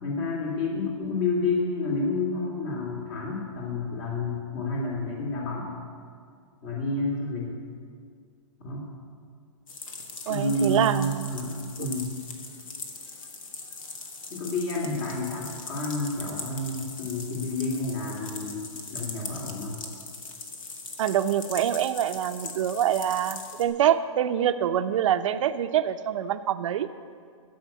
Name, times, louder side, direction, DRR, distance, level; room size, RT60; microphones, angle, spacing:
voice 1, 0.0-5.7 6.6-7.5 8.6-8.8 10.3-12.1 14.3-18.7 18.9-19.8, left 2 dB, 45° left, -3 dB, 2.8 m, -29 dB
sound 1, 9.7-23.6, left 4 dB, 85° left, 2.1 m, -40 dB
voice 2, 10.3-11.3 21.0-26.9, right 10 dB, 70° right, 10 dB, 0.6 m, -25 dB
13.0 x 7.2 x 8.7 m, 2.1 s
hypercardioid pair, 140°, 17 cm